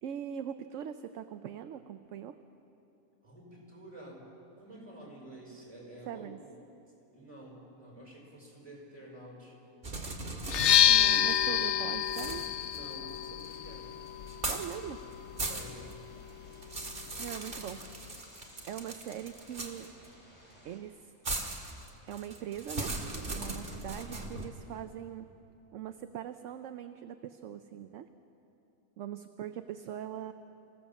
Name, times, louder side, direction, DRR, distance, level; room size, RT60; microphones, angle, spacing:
voice 1, 0.0-2.4 6.1-6.4 10.9-12.5 14.5-15.0 17.2-17.9 18.6-19.9 20.6-21.1 22.1-23.0 23.3-25.3 25.7-28.1 29.0-30.3, right 10 dB, 65° right, 9 dB, 0.9 m, -41 dB
voice 2, 3.2-4.3 4.6-6.3 7.1-9.6 10.8-11.7 12.7-14.0 15.5-15.9 17.5-17.6, right 1 dB, 20° right, -3 dB, 5.2 m, -50 dB
sound 1, 9.8-11.6 12.1-13.6 14.3-14.8 15.1-15.9 16.3-20.1 21.2-24.5, right 2 dB, 40° right, 2.0 m, -39 dB
sound 2, 10.4-18.2, left 10 dB, 60° left, 0.8 m, -29 dB
sound 3, 13.4-20.8, equal, 25° left, 4.3 m, -57 dB
25.0 x 16.5 x 7.2 m, 2.9 s
omnidirectional pair, 1.5 m